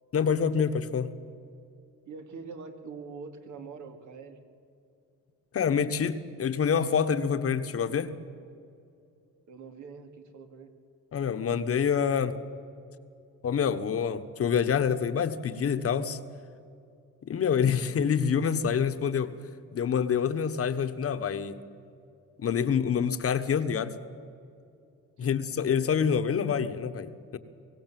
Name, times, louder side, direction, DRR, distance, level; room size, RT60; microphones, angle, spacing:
voice 1, 0.1-1.1 5.5-8.1 11.1-12.4 13.4-16.2 17.2-19.3 19.7-21.6 22.4-23.9 25.2-27.4, left 7 dB, 50° left, 11 dB, 1.2 m, -27 dB
voice 2, 2.1-4.4 9.5-10.7 25.2-25.4, right 5 dB, 75° right, 5 dB, 2.5 m, -44 dB
24.0 x 16.5 x 7.6 m, 2.5 s
cardioid pair, 90°, 30 cm